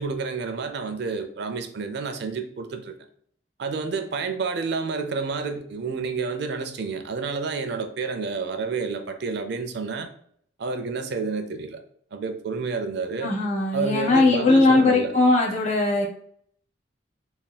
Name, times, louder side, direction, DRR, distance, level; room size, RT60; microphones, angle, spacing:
voice 1, 0.0-2.9 3.6-10.1 10.6-11.8 12.1-13.3 13.7-15.2, right 4 dB, 60° right, 7 dB, 0.4 m, -29 dB
voice 2, 13.2-16.1, left 2 dB, 40° left, -2 dB, 0.9 m, -19 dB
3.4 x 2.2 x 4.1 m, 0.62 s
head